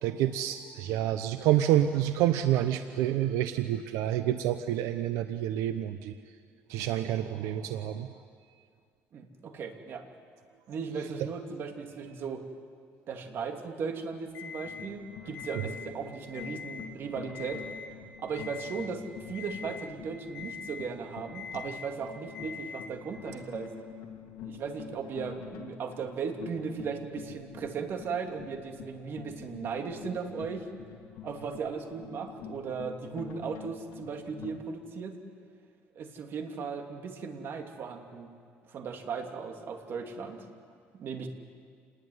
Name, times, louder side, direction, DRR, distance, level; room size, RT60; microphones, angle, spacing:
voice 1, 0.0-6.1 6.7-8.1, right 12 dB, 90° right, 9 dB, 0.9 m, -28 dB
voice 2, 9.1-10.0 10.7-12.4 13.1-17.6 18.2-23.7 24.4-30.6 31.2-35.2 35.9-38.3 38.7-40.4 41.0-41.3, right 5 dB, 50° right, 4 dB, 2.9 m, -37 dB
Alarm, 14.3-14.9 15.3-15.9 16.3-16.9 17.3-17.9 18.3-18.9 19.3-19.9 20.3-20.9 21.3-21.9 22.3-22.9, left 6 dB, 60° left, 7.1 m, -42 dB
sound 1, 14.6-34.6, left 8 dB, 80° left, 2.5 m, -47 dB
28.0 x 20.0 x 9.6 m, 2.2 s
cardioid pair, 130°, 5 cm